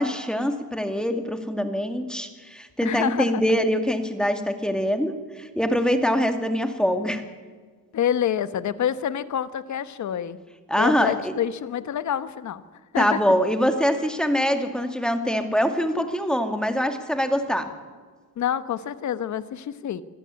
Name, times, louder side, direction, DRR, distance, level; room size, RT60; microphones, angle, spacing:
voice 1, 0.0-7.2 10.7-11.3 13.0-17.7, equal, ahead, 7 dB, 2.3 m, -24 dB
voice 2, 2.8-3.4 7.9-10.4 10.8-12.6 12.9-13.2 18.4-20.0, left 9 dB, 50° left, 13 dB, 1.3 m, -27 dB
25.0 x 14.0 x 9.7 m, 1.5 s
cardioid pair, 115°, 38 cm